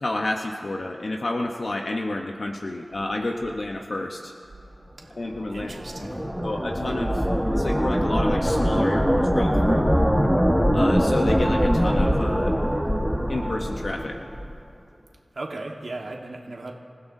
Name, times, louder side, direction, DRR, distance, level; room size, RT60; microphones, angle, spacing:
voice 1, 0.0-4.3 5.2-5.7 6.0-7.2 7.5-9.9 10.7-12.5 13.3-14.2, left 2 dB, 65° left, 2 dB, 0.9 m, -30 dB
sound 1, 5.3-14.6, equal, 5° left, 1.3 m, -22 dB
voice 2, 5.5-6.3 15.3-16.7, right 2 dB, 70° right, 0 dB, 1.4 m, -36 dB
27.5 x 15.5 x 2.7 m, 2.6 s
wide cardioid pair, 75°, 0 cm